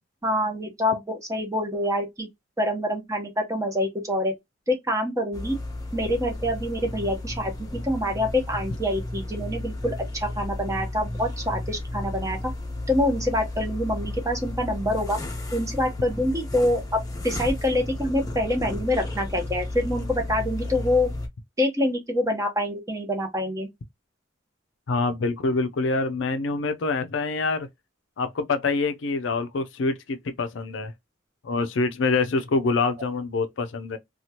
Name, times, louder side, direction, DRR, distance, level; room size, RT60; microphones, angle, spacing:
voice 1, 0.2-2.3 2.6-4.3 4.7-5.6 5.9-7.5 7.8-12.5 12.9-15.2 15.5-21.1 21.6-23.7, left 1 dB, 15° right, 0.8 m, -26 dB
sound 1, 5.3-21.3, left 1 dB, 20° left, 0.7 m, -33 dB
voice 2, 24.9-27.7 28.2-30.9 31.4-34.0, left 3 dB, 70° left, 0.4 m, -25 dB
2.9 x 2.3 x 2.8 m
head